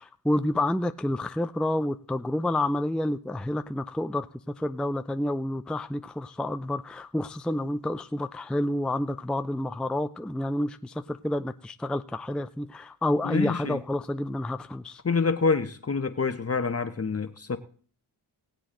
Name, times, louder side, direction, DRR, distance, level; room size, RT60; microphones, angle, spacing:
voice 1, 0.0-15.0, left 1 dB, ahead, 0.5 m, -29 dB
voice 2, 13.2-13.8 15.0-17.6, left 4 dB, 35° left, 1.1 m, -27 dB
18.5 x 8.1 x 3.8 m
cardioid pair, 55°, 44 cm